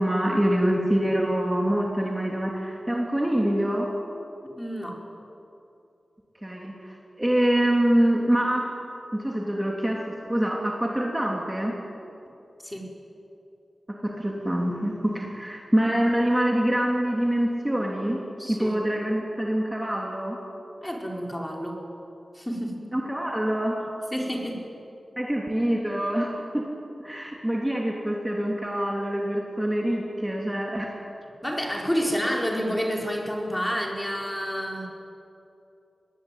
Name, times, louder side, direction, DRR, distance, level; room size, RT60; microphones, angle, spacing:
voice 1, 0.0-3.9 6.4-8.6 9.1-11.7 14.0-18.2 18.5-20.4 22.9-23.7 25.2-26.7 27.0-31.0, right 1 dB, 15° right, -1 dB, 3.3 m, -25 dB
voice 2, 4.4-5.1 12.6-12.9 18.4-18.8 20.8-21.9 22.3-22.9 24.1-24.7 31.4-34.9, equal, 10° left, 0 dB, 4.8 m, -29 dB
25.0 x 20.5 x 9.3 m, 2.8 s
wide cardioid pair, 65°, 0 cm